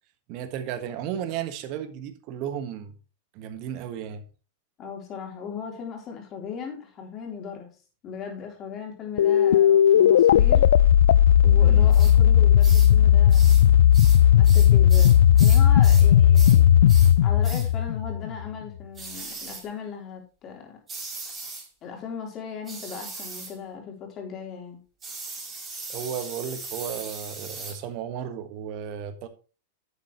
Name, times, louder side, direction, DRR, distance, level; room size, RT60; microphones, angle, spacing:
voice 1, 0.3-2.9 3.3-4.2 11.6-11.9 25.9-29.3, right 9 dB, 45° right, 1.5 m, -34 dB
voice 2, 4.8-7.7 8.0-10.7 11.4-13.5 14.3-16.7 17.2-20.8 21.8-24.8, left 6 dB, 35° left, 3.7 m, -37 dB
sound 1, 9.2-18.5, left 10 dB, 70° left, 0.4 m, -16 dB
sound 2, 11.9-12.2 12.6-12.9 13.3-13.7 13.9-16.1 16.3-16.6 16.9-17.1 17.4-17.7 19.0-19.7 20.9-21.7 22.7-23.6 25.0-27.8, right 3 dB, 25° right, 4.8 m, -38 dB
10.5 x 7.9 x 3.1 m
hypercardioid pair, 100°, 0 cm